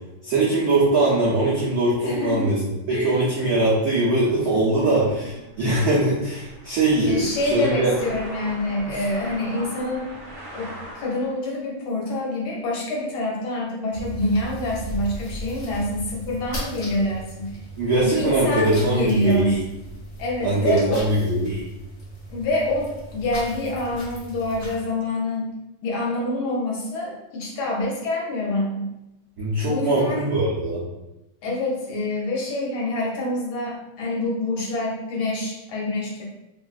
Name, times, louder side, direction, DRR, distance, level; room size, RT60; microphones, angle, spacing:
voice 1, 0.2-7.9 8.9-9.0 17.8-19.6 20.4-21.6 29.4-30.8, right 2 dB, 85° right, -7 dB, 0.8 m, -21 dB
voice 2, 2.0-2.5 2.9-3.3 4.5-4.9 7.1-10.1 10.5-17.5 18.0-19.5 20.2-21.0 22.3-25.5 25.8-28.9 29.7-30.2 31.4-36.2, left 2 dB, 70° left, -3 dB, 1.5 m, -26 dB
sound 1, 4.4-11.5, right 1 dB, 50° right, 1.0 m, -41 dB
sound 2, 13.9-24.8, right 1 dB, 50° left, 1.1 m, -37 dB
3.5 x 2.3 x 2.4 m, 0.95 s
omnidirectional pair, 2.4 m